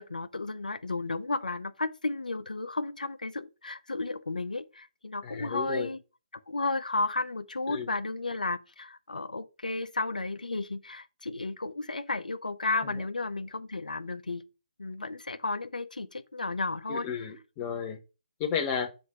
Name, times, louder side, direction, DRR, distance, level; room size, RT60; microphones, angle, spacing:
voice 1, 0.0-6.0 6.5-14.4 14.8-17.1, left 3 dB, 90° left, 0.8 m, -33 dB
voice 2, 5.2-5.9 7.7-7.9 12.8-12.9 16.9-18.0 18.4-18.9, left 7 dB, 25° left, 1.2 m, -33 dB
7.8 x 3.6 x 6.2 m
figure-of-eight pair, 150°, 4 cm